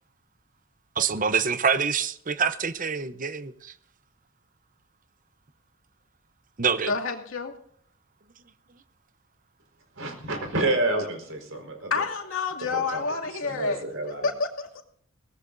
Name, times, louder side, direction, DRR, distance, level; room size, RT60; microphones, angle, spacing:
voice 1, 1.0-3.7 6.6-6.9, right 6 dB, 40° right, 0.8 m, -26 dB
voice 2, 6.9-7.5 11.9-14.8, left 4 dB, 85° left, 2.5 m, -29 dB
voice 3, 10.0-11.9 12.7-13.0 13.4-14.3, right 2 dB, 75° right, 4.7 m, -29 dB
22.0 x 18.0 x 2.7 m
head